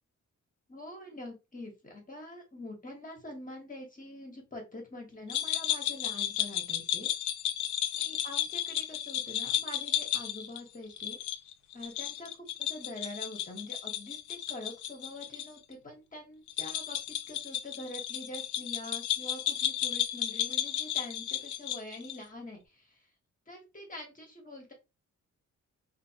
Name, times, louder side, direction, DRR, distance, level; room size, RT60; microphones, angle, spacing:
voice 1, 0.7-7.1 7.9-11.2 11.7-23.1 23.5-24.7, left 1 dB, 25° left, 1 dB, 0.9 m, -45 dB
sound 1, 5.3-15.5 15.7-15.8 16.5-22.2, left 11 dB, 70° left, 0.5 m, -33 dB
2.6 x 2.5 x 2.7 m, 0.26 s
cardioid pair, 100°, 30 cm